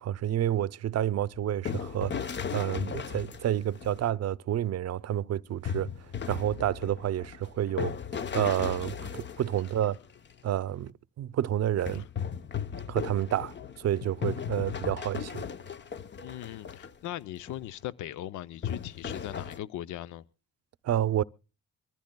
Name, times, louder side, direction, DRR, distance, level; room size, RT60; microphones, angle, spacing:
voice 1, 0.0-5.9 6.3-7.9 8.3-10.0 10.4-12.0 12.9-15.5 20.8-21.2, right 11 dB, 55° right, 0.6 m, -29 dB
sound 1, 1.2-4.1 5.6-10.3 11.8-17.1 17.5-17.7 18.6-19.6, left 7 dB, 35° left, 0.8 m, -37 dB
voice 2, 16.2-20.2, left 13 dB, 75° left, 0.6 m, -39 dB
24.0 x 14.5 x 2.2 m
cardioid pair, 90°, 30 cm